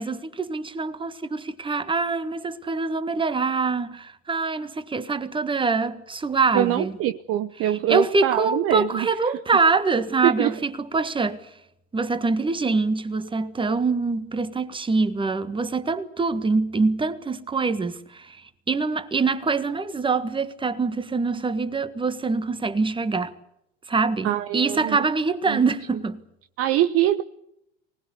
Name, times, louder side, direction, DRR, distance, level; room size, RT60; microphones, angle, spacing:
voice 1, 0.0-6.9 7.7-11.5 11.9-18.4 18.7-23.3 23.9-26.2, right 4 dB, 15° right, 1.7 m, -24 dB
voice 2, 6.5-9.1 10.2-10.5 24.2-25.0 25.5-25.6 26.6-27.2, right 13 dB, 35° right, 0.8 m, -23 dB
24.5 x 19.5 x 8.3 m
hypercardioid pair, 90°, 38 cm